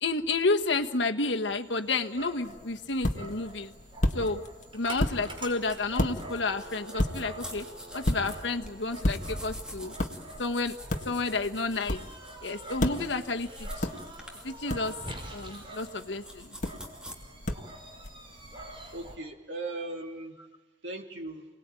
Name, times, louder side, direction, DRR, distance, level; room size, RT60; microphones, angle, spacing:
voice 1, 0.0-3.7 4.1-4.4 4.7-7.6 7.9-9.9 10.4-10.8 11.0-12.0 12.4-13.9 14.4-14.9 15.3-16.5, left 3 dB, 90° left, 6 dB, 1.5 m, -30 dB
Dog, 1.4-19.1, right 1 dB, 30° right, 5.1 m, -46 dB
sound 1, 2.4-19.2, left 1 dB, 45° left, 1.7 m, -35 dB
sound 2, 5.7-17.1, equal, 5° right, 2.9 m, -47 dB
voice 2, 18.9-20.4 20.8-21.5, right 2 dB, 85° right, 2 dB, 3.3 m, -38 dB
29.0 x 19.5 x 9.1 m, 1.2 s
head